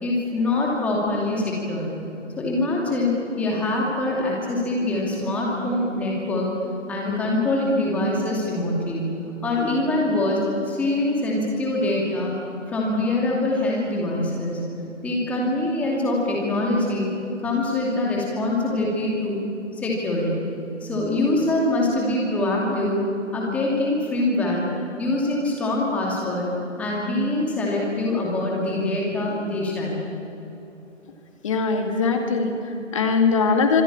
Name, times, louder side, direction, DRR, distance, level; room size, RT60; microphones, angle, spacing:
voice 1, 0.0-1.9 2.4-6.5 6.9-9.2 9.4-12.3 12.7-14.7 15.0-17.1 17.4-19.4 19.7-20.5 20.8-23.0 23.3-24.6 25.0-26.5 26.8-30.1, left 2 dB, 5° left, -3 dB, 2.5 m, -24 dB
voice 2, 31.4-33.8, left 4 dB, 25° left, 4 dB, 2.4 m, -21 dB
26.5 x 23.0 x 8.8 m, 2.9 s
figure-of-eight pair, 155°, 38 cm